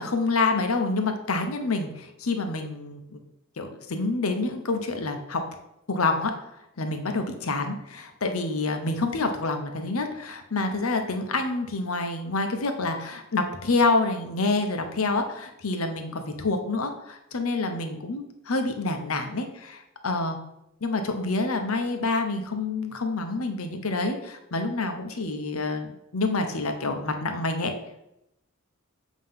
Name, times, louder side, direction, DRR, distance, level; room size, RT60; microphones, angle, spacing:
voice 1, 0.0-3.2 3.6-5.4 5.9-6.3 6.8-20.4 20.8-27.7, left 3 dB, 80° left, 6 dB, 0.9 m, -27 dB
7.6 x 3.1 x 5.6 m, 0.84 s
head